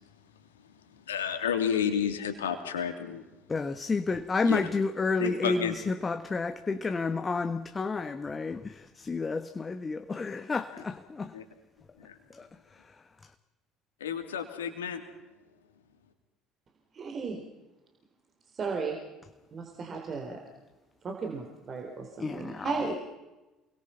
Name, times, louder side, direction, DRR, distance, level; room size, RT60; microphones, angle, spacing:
voice 1, 0.9-3.2 4.4-4.7 5.2-5.7 11.3-11.4 12.0-12.2 14.0-15.0, left 8 dB, 80° left, 2.9 m, -31 dB
voice 2, 3.5-11.3 12.3-12.5 22.2-22.8, left 4 dB, 25° left, 1.4 m, -30 dB
voice 3, 16.9-17.4 18.5-19.0 19.5-20.4 21.0-23.0, right 4 dB, 40° right, 4.0 m, -35 dB
29.0 x 22.0 x 5.8 m
figure-of-eight pair, 60°, 0 cm